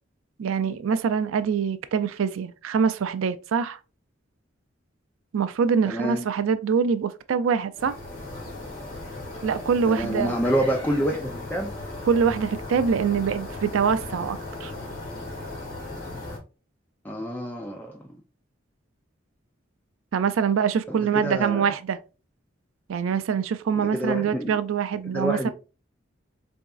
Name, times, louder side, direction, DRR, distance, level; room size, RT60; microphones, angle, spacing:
voice 1, 0.4-3.8 5.3-8.0 9.4-10.3 12.1-14.7 20.1-22.0 22.9-25.5, right 6 dB, 85° right, 0.4 m, -24 dB
voice 2, 5.9-6.3 9.9-11.7 17.0-18.0 20.9-21.7 23.8-24.6 25.1-25.5, right 1 dB, 10° left, 0.4 m, -27 dB
sound 1, 7.8-16.4, left 2 dB, 45° left, 1.7 m, -37 dB
3.9 x 3.5 x 2.4 m
head